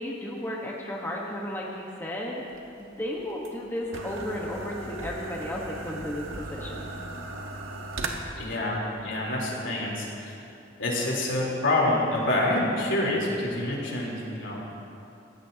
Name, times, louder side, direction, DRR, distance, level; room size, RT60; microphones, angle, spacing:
voice 1, 0.0-2.4 2.8-6.9, left 1 dB, 10° left, -3 dB, 1.3 m, -34 dB
sound 1, 2.5-8.1, right 2 dB, 90° right, 1.4 m, -37 dB
voice 2, 8.4-10.4 10.8-14.6, left 1 dB, 70° left, -4 dB, 3.8 m, -27 dB
21.5 x 16.5 x 2.9 m, 2.7 s
head